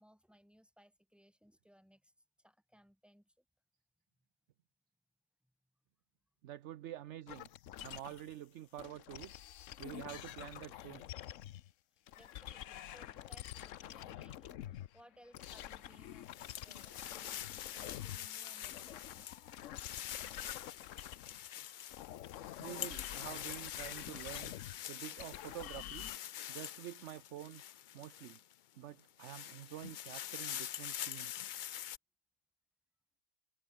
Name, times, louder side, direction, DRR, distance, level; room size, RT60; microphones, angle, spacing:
voice 1, 0.0-2.1 2.4-3.4 11.9-16.3 16.6-19.3 26.3-26.6, equal, ahead, 4.7 m, -64 dB
voice 2, 6.4-7.5 7.8-9.3 9.8-11.0 22.6-24.5 24.9-26.1 26.5-27.6 27.9-28.4 28.8-31.5, right 13 dB, 65° right, 0.8 m, -48 dB
sound 1, 7.3-8.3 8.8-11.7 12.1-18.3 18.5-21.5 21.9-26.2, left 12 dB, 70° left, 1.0 m, -48 dB
sound 2, 15.7-28.5 29.0-32.0, left 11 dB, 90° left, 0.4 m, -45 dB
omnidirectional pair, 1.4 m